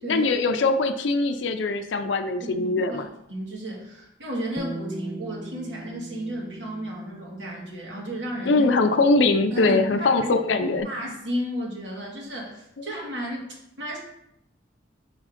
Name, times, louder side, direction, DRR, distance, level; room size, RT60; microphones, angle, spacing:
voice 1, 0.0-3.1 8.5-10.9, left 3 dB, 75° left, 7 dB, 0.5 m, -22 dB
voice 2, 2.4-8.7 9.5-10.3 10.6-13.5 13.8-14.0, equal, 70° right, -3 dB, 1.8 m, -33 dB
Bass guitar, 4.6-10.8, right 2 dB, 5° right, 0.4 m, -42 dB
5.8 x 3.7 x 4.9 m, 0.80 s
head